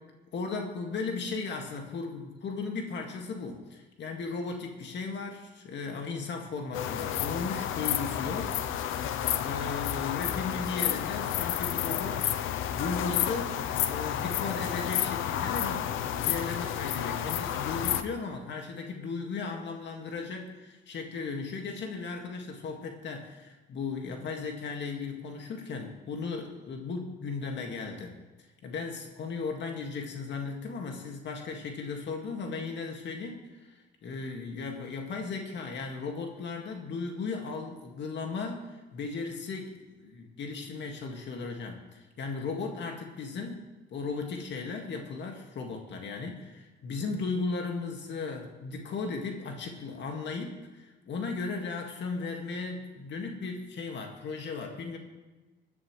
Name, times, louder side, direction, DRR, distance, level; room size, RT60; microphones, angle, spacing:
voice 1, 0.3-8.6 9.4-28.2 28.6-43.6 43.9-55.0, left 4 dB, 65° left, 2 dB, 2.0 m, -36 dB
sound 1, 6.7-18.0, left 10 dB, 90° left, 0.6 m, -31 dB
19.5 x 11.0 x 3.2 m, 1.2 s
cardioid pair, 90°, 20 cm